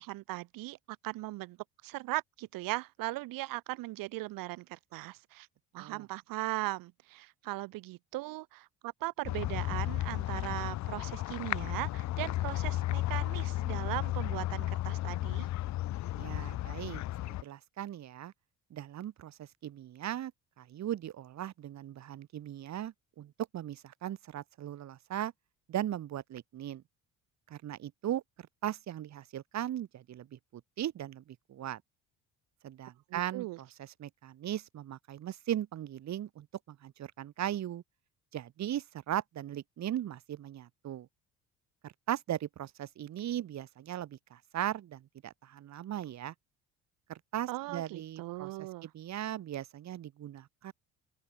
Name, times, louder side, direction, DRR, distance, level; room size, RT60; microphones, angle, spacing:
voice 1, 0.0-1.6 1.8-5.5 5.7-15.5 33.1-33.6 47.5-48.9, right 19 dB, 75° right, 2.3 m, -38 dB
sound 1, 9.3-17.4, left 15 dB, 55° left, 0.7 m, -34 dB
voice 2, 16.1-18.3 18.7-20.3 20.6-25.3 25.7-26.8 27.5-31.8 32.6-37.8 38.3-41.1 41.8-46.3 47.1-48.5 48.8-50.7, right 11 dB, 55° right, 1.4 m, -38 dB
open air
supercardioid pair, 75°, 34 cm